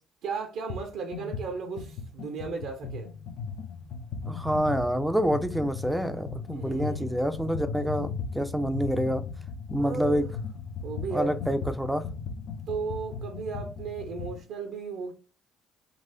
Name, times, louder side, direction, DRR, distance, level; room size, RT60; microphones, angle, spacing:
voice 1, 0.2-3.1 6.5-7.2 9.8-10.3 10.8-11.4 12.7-15.1, right 5 dB, 65° right, 0.5 m, -35 dB
sound 1, 0.7-0.9 1.1-14.4, left 5 dB, 60° left, 0.5 m, -37 dB
voice 2, 4.3-9.2 9.7-10.3 11.1-12.0, equal, 5° right, 0.4 m, -27 dB
4.0 x 2.4 x 2.6 m
figure-of-eight pair, 50°, 0 cm